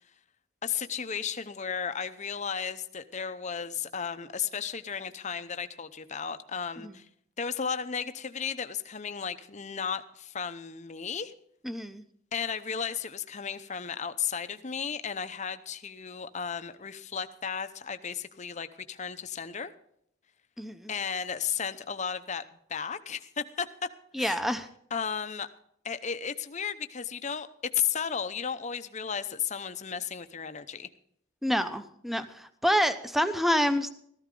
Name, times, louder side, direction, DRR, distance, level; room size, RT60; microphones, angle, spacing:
voice 1, 0.6-7.0 7.4-11.3 12.3-19.7 20.9-22.4 22.7-23.7 24.2-24.4 24.9-25.5 25.8-27.5 27.7-30.9, left 7 dB, 35° left, 10 dB, 0.7 m, -34 dB
voice 2, 11.6-12.0 20.6-20.9 24.1-24.7 31.4-33.9, equal, ahead, 10 dB, 0.7 m, -27 dB
14.5 x 14.0 x 3.8 m, 0.69 s
head